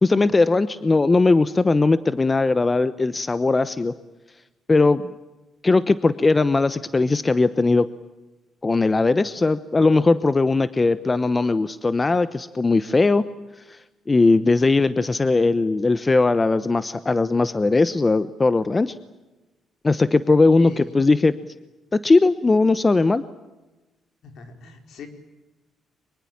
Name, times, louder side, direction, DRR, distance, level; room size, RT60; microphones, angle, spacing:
voice 1, 0.0-3.9 4.7-5.1 5.6-7.9 8.6-13.2 13.7-13.8 14.1-18.9 19.8-21.4 21.9-23.2, left 3 dB, 25° left, 14 dB, 1.0 m, -19 dB
voice 2, 20.6-20.9 24.2-25.1, left 5 dB, 70° left, 6 dB, 4.8 m, -41 dB
24.5 x 22.5 x 8.8 m, 1.1 s
cardioid pair, 90°, 0 cm